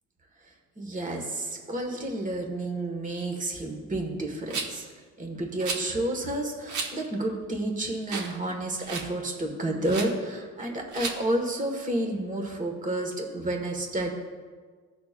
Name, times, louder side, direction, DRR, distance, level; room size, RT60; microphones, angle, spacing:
voice 1, 0.4-4.9 5.2-14.1, right 1 dB, 25° right, 2 dB, 1.7 m, -30 dB
Rattle, 4.5-4.9 5.6-5.9 6.7-6.9 7.4-7.5 8.0-8.4 8.6-9.1 9.8-10.1 10.9-11.2, right 4 dB, 75° right, 1.2 m, -33 dB
16.5 x 6.4 x 2.5 m, 1.6 s
cardioid pair, 90°, 30 cm